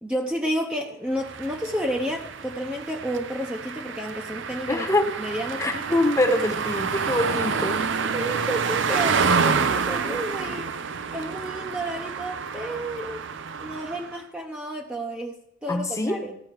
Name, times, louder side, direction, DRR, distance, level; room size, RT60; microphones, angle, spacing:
voice 1, 0.0-4.9 5.2-6.0 7.3-7.5 8.0-10.7 11.1-13.2 13.6-15.4 15.6-16.4, equal, 5° right, 1 dB, 0.8 m, -31 dB
sound 1, 1.2-14.2, right 5 dB, 65° right, 0.6 m, -28 dB
voice 2, 4.7-5.1 5.6-7.9 15.7-16.2, left 1 dB, 15° left, 4 dB, 1.1 m, -24 dB
15.0 x 6.2 x 4.6 m, 0.77 s
head